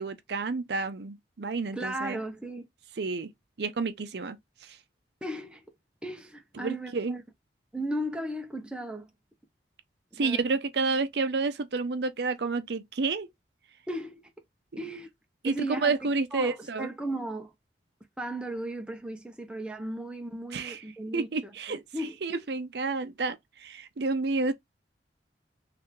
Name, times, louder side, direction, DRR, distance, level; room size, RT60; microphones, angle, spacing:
voice 1, 0.0-2.2 3.0-3.3 3.6-4.8 6.5-7.2 10.2-13.3 15.4-15.5 15.8-16.9 20.5-20.8 21.1-24.5, right 3 dB, 65° right, 0.6 m, -30 dB
voice 2, 1.7-2.7 5.2-5.7 6.0-7.2 7.7-9.1 10.1-10.5 13.9-14.2 14.8-15.1 15.4-16.0 16.3-17.5 18.2-22.4, right 1 dB, 5° right, 0.7 m, -36 dB
3.3 x 3.1 x 3.6 m
head